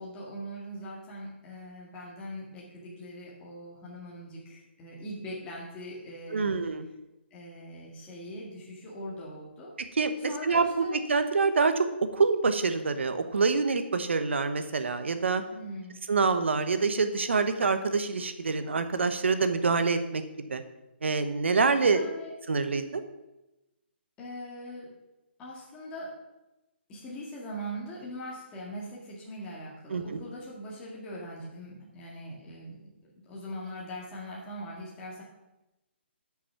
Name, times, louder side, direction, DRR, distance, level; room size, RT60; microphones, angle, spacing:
voice 1, 0.0-6.6 7.3-9.7 10.3-11.0 15.5-16.0 21.8-22.3 24.2-24.9 25.4-26.1 26.9-32.9 33.2-35.2, equal, 15° left, -5 dB, 2.0 m, -41 dB
voice 2, 6.3-6.9 10.0-15.4 16.1-20.2 20.5-20.6 21.0-22.1 22.5-23.0 29.9-30.0, right 4 dB, 80° right, 9 dB, 1.1 m, -26 dB
9.9 x 6.1 x 5.8 m, 0.99 s
hypercardioid pair, 160°, 6 cm